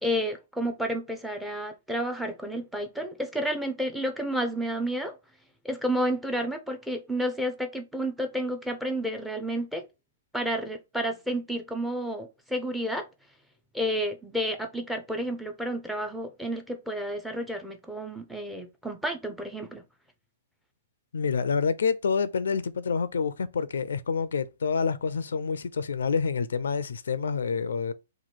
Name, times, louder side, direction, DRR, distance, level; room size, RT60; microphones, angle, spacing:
voice 1, 0.0-5.1 5.6-9.8 10.3-13.1 13.7-19.8, equal, ahead, 0.5 m, -31 dB
voice 2, 21.1-27.9, left 5 dB, 85° left, 0.4 m, -27 dB
3.0 x 2.3 x 4.3 m
hypercardioid pair, 150°, 0 cm